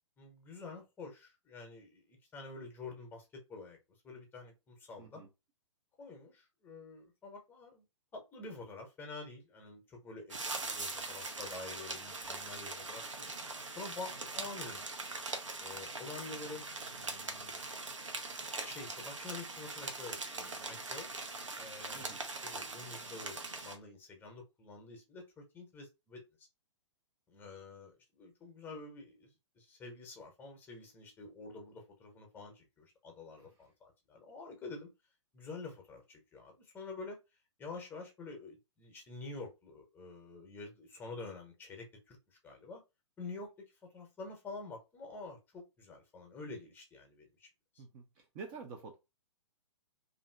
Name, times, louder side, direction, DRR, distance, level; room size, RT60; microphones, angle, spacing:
voice 1, 0.2-3.8 4.0-5.2 6.0-7.8 8.1-13.3 13.8-14.8 15.6-17.6 18.5-21.1 21.6-26.5 27.3-34.9 35.3-37.2 37.6-42.8 43.2-43.5 43.8-47.5 47.7-47.8, left 3 dB, 15° left, 0.7 m, -48 dB
sound 1, 10.3-23.8, right 3 dB, 80° right, 0.6 m, -42 dB
voice 2, 47.8-48.9, right 4 dB, 25° right, 0.4 m, -48 dB
2.7 x 2.5 x 2.2 m
figure-of-eight pair, 115°, 16 cm